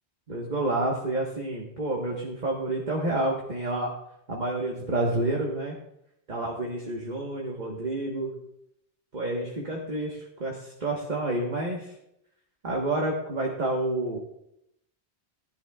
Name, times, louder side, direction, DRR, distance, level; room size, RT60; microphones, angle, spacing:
voice 1, 0.3-3.9 4.3-5.7 6.3-8.3 9.1-11.9 12.6-14.2, right 2 dB, 40° right, -2 dB, 1.3 m, -29 dB
18.5 x 10.5 x 2.3 m, 0.79 s
omnidirectional pair, 1.1 m